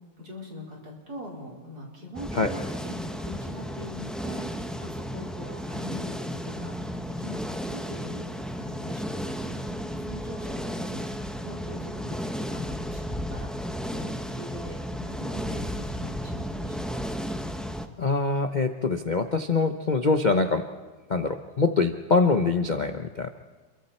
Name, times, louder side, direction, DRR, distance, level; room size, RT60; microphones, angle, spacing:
voice 1, 0.2-6.7 7.2-11.1 11.4-16.8, equal, 50° right, -2 dB, 5.2 m, -42 dB
sound 1, 2.1-17.9, equal, ahead, 0.4 m, -33 dB
voice 2, 18.0-20.6 21.1-23.3, left 3 dB, 60° left, 7 dB, 0.4 m, -24 dB
28.5 x 23.0 x 4.4 m, 1.4 s
omnidirectional pair, 2.2 m